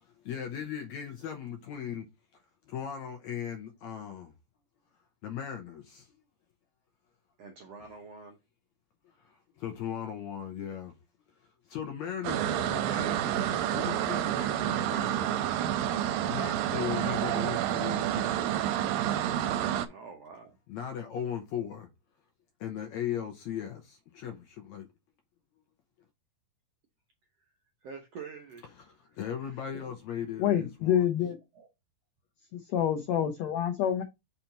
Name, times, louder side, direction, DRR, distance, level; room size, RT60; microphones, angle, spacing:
voice 1, 0.0-2.1 2.7-4.3 5.2-6.1 9.0-10.9 11.4-15.5 16.3-18.4 20.7-21.9 22.6-24.9 28.8-31.1, left 9 dB, 75° left, 1.7 m, -38 dB
voice 2, 7.4-8.4 19.9-20.5 27.8-28.6 29.4-29.7 31.5-31.7, right 5 dB, 70° right, 1.5 m, -46 dB
sound 1, 12.2-19.9, right 11 dB, 90° right, 2.4 m, -29 dB
voice 3, 30.4-31.4 32.5-34.0, left 10 dB, 90° left, 1.5 m, -27 dB
5.7 x 4.3 x 3.9 m
omnidirectional pair, 4.1 m